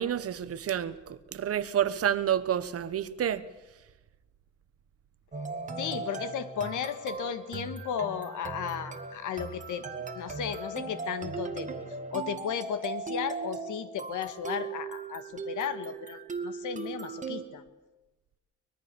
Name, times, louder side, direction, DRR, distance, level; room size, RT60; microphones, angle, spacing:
voice 1, 0.0-3.4, right 10 dB, 50° right, 13 dB, 1.1 m, -29 dB
sound 1, 5.3-17.4, right 4 dB, 25° right, 2.0 m, -38 dB
voice 2, 5.8-9.9 10.1-11.7 12.1-17.6, left 8 dB, 90° left, 11 dB, 1.8 m, -35 dB
24.0 x 21.0 x 7.0 m, 1.1 s
wide cardioid pair, 165°, 30 cm